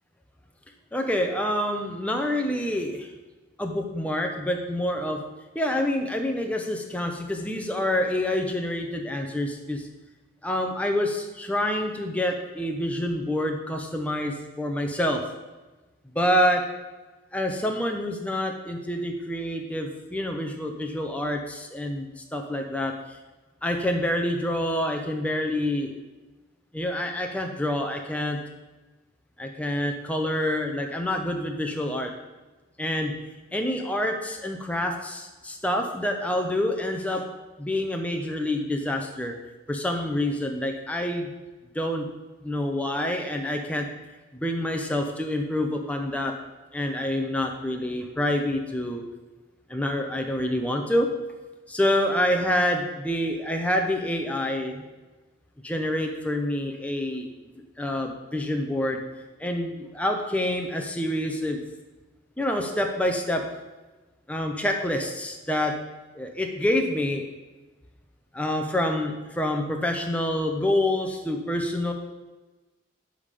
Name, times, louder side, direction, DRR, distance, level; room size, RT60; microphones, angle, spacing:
voice 1, 0.9-3.1 3.6-5.2 5.5-9.9 10.4-15.2 16.1-16.6 17.3-23.2 23.6-25.9 26.7-28.4 29.4-32.1 32.8-33.1 33.5-37.2 37.6-39.3 39.7-41.3 41.7-42.1 42.4-43.9 44.3-46.3 46.7-49.0 49.7-51.1 51.7-54.8 55.6-57.3 57.8-59.0 59.4-61.6 62.4-63.4 64.3-65.7 66.1-67.3 68.3-71.9, left 1 dB, 5° left, 3 dB, 0.7 m, -27 dB
10.0 x 3.8 x 6.7 m, 1.2 s
head